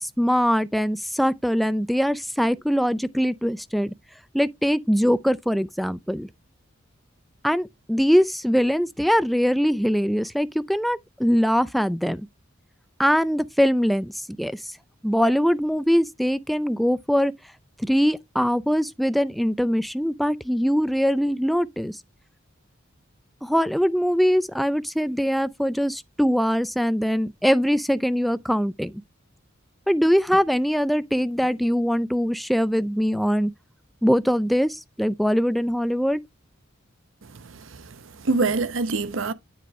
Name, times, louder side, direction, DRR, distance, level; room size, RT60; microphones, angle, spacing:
voice 1, 0.0-3.9 4.3-6.3 7.4-12.3 13.0-14.1 14.4-14.7 15.0-17.3 17.8-22.0 23.4-28.9 29.9-33.5 34.0-36.2, equal, ahead, 0.4 m, -22 dB
voice 2, 37.2-39.3, right 3 dB, 70° right, 0.8 m, -26 dB
9.3 x 4.7 x 3.1 m
head